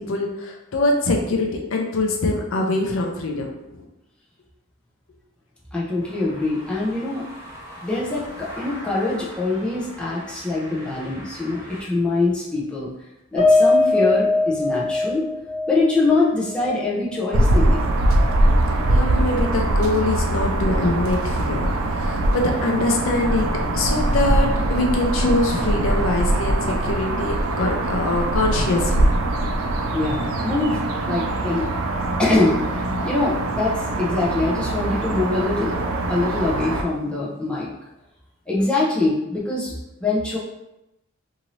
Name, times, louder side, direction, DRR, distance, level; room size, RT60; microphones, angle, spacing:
voice 1, 0.0-3.5 18.9-23.5 23.7-29.0, left 2 dB, 70° left, 2 dB, 0.5 m, -23 dB
voice 2, 5.7-7.3 7.8-12.9 13.3-15.3 15.7-17.8 29.9-30.8 31.1-31.7 32.2-32.6 33.0-35.7 36.1-37.7 38.5-39.7 40.0-40.4, left 2 dB, 5° left, -7 dB, 0.6 m, -23 dB
sound 1, 6.0-11.8, equal, 15° right, 1.1 m, -41 dB
Piano, 13.4-17.9 18.2-18.4 18.8-18.9, left 2 dB, 25° left, 0.9 m, -21 dB
sound 2, 17.3-36.8, right 1 dB, 80° right, 0.4 m, -22 dB
2.7 x 2.6 x 3.0 m, 0.91 s
head